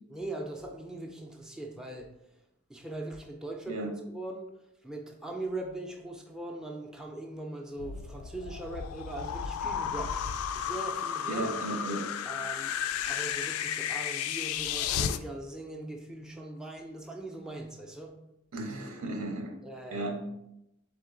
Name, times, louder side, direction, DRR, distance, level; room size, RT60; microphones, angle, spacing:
voice 1, 0.1-2.1 2.7-3.8 4.1-4.5 4.8-10.2 10.5-11.5 12.3-12.8 13.1-18.2 19.6-20.2, right 2 dB, 5° right, 1 dB, 0.4 m, -40 dB
sound 1, 7.8-15.2, left 8 dB, 85° left, 0.3 m, -33 dB
voice 2, 11.3-12.1 18.5-19.6 19.9-20.2, right 2 dB, 90° right, 3 dB, 0.9 m, -34 dB
3.7 x 3.7 x 3.7 m, 0.86 s
head